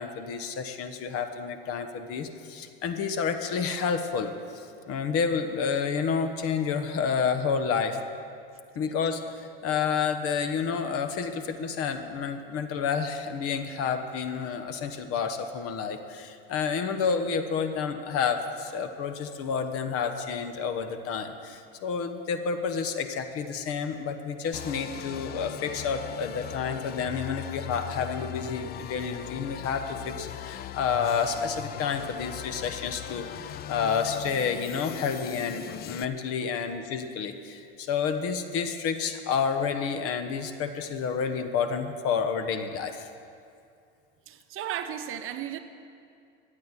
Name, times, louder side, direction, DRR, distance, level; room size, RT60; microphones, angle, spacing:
voice 1, 0.0-8.0 8.7-43.1, left 6 dB, 50° left, 8 dB, 1.2 m, -30 dB
sound 1, 24.5-36.1, left 11 dB, 30° left, 0.4 m, -39 dB
voice 2, 44.3-45.6, right 10 dB, 45° right, 8 dB, 0.9 m, -34 dB
13.5 x 8.9 x 7.4 m, 2.4 s
supercardioid pair, 110°, 31 cm